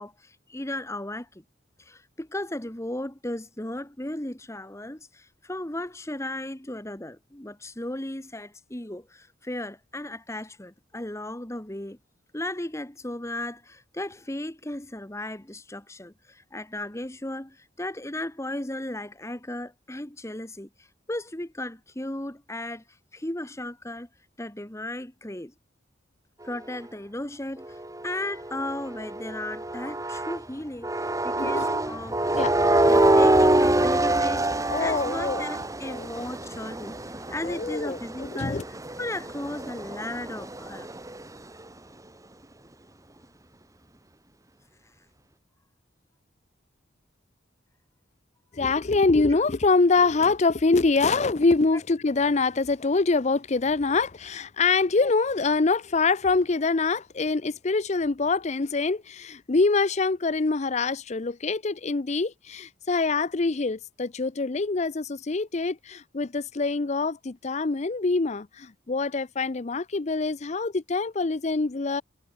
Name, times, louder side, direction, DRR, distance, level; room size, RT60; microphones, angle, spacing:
voice 1, 0.0-1.4 1.8-12.0 12.3-22.8 23.1-24.1 24.4-25.5 26.4-27.8 28.0-32.4 32.7-34.5 34.8-38.7 39.0-40.9, left 1 dB, 15° left, 1.4 m, -35 dB
sound 1, 27.6-30.4 30.8-41.3, right 1 dB, 15° right, 1.6 m, -26 dB
voice 2, 32.3-32.9 34.7-35.4 35.9-36.1 37.4-38.6 48.5-72.0, left 3 dB, 35° left, 0.6 m, -25 dB
head